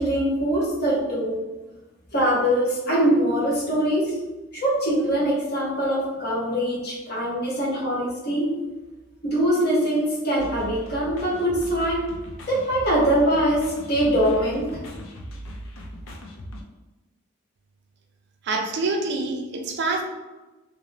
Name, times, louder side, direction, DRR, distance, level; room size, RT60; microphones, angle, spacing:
voice 1, 0.0-1.4 2.1-4.2 4.5-8.5 9.2-12.0 12.5-14.8, right 1 dB, 50° left, -6 dB, 1.0 m, -23 dB
sound 1, 10.4-16.6, equal, 70° left, 0.4 m, -39 dB
voice 2, 18.4-20.0, right 3 dB, 55° right, 2 dB, 0.3 m, -26 dB
2.8 x 2.1 x 2.5 m, 1.1 s
head